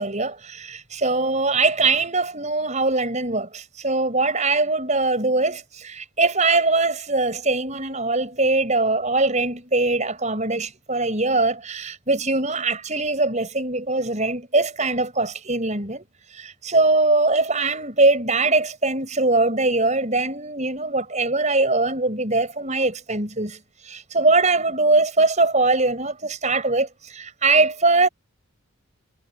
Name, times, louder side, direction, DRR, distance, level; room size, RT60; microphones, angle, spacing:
voice 1, 0.0-16.0 16.3-23.6 23.9-28.1, right 3 dB, 35° right, 6.5 m, -22 dB
head